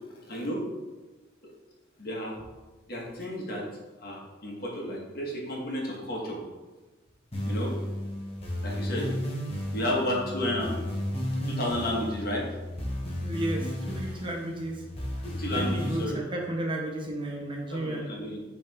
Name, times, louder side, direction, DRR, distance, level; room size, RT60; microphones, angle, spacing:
voice 1, 0.3-0.6 2.0-2.3 2.9-3.6 4.0-6.4 7.4-7.7 8.6-9.1 9.7-10.8 11.4-12.4 15.2-16.2 17.7-18.4, left 1 dB, 50° left, -3 dB, 1.5 m, -32 dB
sound 1, 7.3-16.0, equal, 30° left, 1.2 m, -33 dB
voice 2, 13.2-14.8 15.5-18.1, right 1 dB, 25° right, 0 dB, 0.8 m, -33 dB
8.2 x 3.5 x 3.5 m, 1.2 s
head